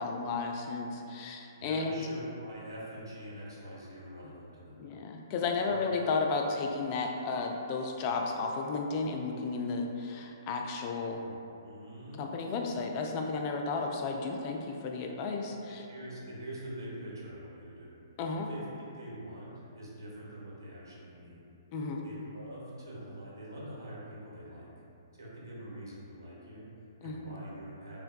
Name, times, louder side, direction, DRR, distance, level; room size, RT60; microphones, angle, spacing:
voice 1, 0.0-2.1 4.8-11.2 12.2-15.8 18.2-18.5 21.7-22.0 27.0-27.3, left 4 dB, 35° left, 2 dB, 0.3 m, -33 dB
voice 2, 1.6-4.8 5.6-5.8 11.2-11.3 11.6-12.4 15.9-17.9 18.3-21.4 22.0-24.7 25.1-28.0, right 1 dB, 80° right, -6 dB, 1.1 m, -45 dB
5.6 x 2.2 x 2.2 m, 2.8 s
figure-of-eight pair, 125°, 2 cm